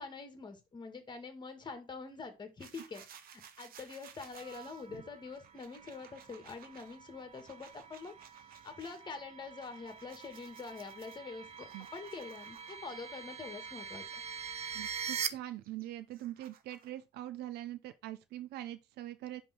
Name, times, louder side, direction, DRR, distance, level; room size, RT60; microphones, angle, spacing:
voice 1, 0.0-3.0 3.3-8.1 8.6-14.0, left 4 dB, 25° left, 1.9 m, -45 dB
sound 1, 2.6-9.0 9.4-13.0 13.6-17.0, right 8 dB, 60° right, 1.1 m, -58 dB
sound 2, 4.3-15.3, right 7 dB, 40° right, 0.8 m, -45 dB
voice 2, 14.7-19.4, right 14 dB, 75° right, 0.8 m, -43 dB
5.3 x 3.8 x 5.9 m
cardioid pair, 110°, 17 cm